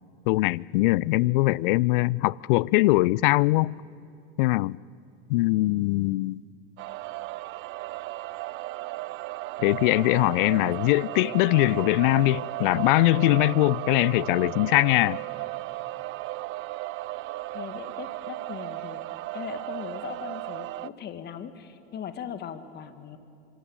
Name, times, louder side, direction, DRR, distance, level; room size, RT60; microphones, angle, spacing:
voice 1, 0.3-3.7 4.4-4.8 5.3-6.4 9.6-15.2, left 20 dB, 60° left, 0.5 m, -22 dB
sound 1, 6.8-20.9, right 18 dB, 45° right, 0.7 m, -35 dB
voice 2, 17.5-19.0 19.3-23.2, left 8 dB, 35° left, 2.0 m, -39 dB
26.0 x 23.5 x 8.8 m
hypercardioid pair, 85°, 29 cm